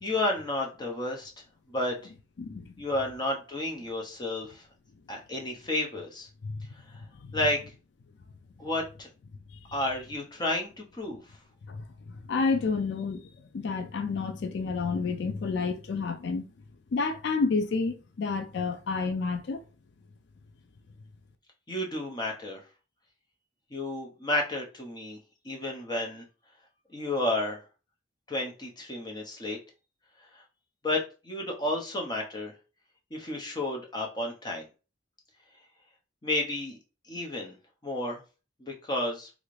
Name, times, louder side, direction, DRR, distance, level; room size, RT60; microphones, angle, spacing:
voice 1, 0.0-1.3 1.7-2.0 2.8-4.7 5.1-6.3 6.9-7.0 7.3-7.6 8.6-9.1 9.7-11.2 21.7-22.6 23.7-25.2 25.4-26.2 26.9-27.6 28.3-29.6 30.3-30.4 30.8-32.5 33.1-34.7 36.2-36.8 37.1-37.6 37.8-38.2 38.6-39.3, left 1 dB, 20° left, 0.7 m, -31 dB
voice 2, 12.3-13.2 13.5-16.4 16.9-19.6, left 4 dB, 60° left, 0.4 m, -29 dB
3.1 x 2.5 x 3.2 m
head